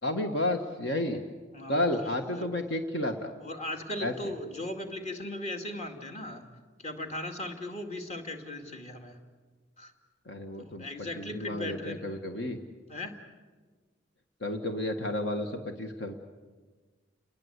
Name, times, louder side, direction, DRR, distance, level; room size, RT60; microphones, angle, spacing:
voice 1, 0.0-1.2 1.7-3.3 4.0-4.1 10.2-12.6 14.4-16.1, left 1 dB, 60° left, 4 dB, 1.6 m, -31 dB
voice 2, 1.5-2.5 3.4-6.5 6.8-9.2 9.8-9.9 10.6-12.1 12.9-13.2, left 1 dB, 35° left, 4 dB, 2.5 m, -38 dB
30.0 x 21.0 x 8.2 m, 1.4 s
head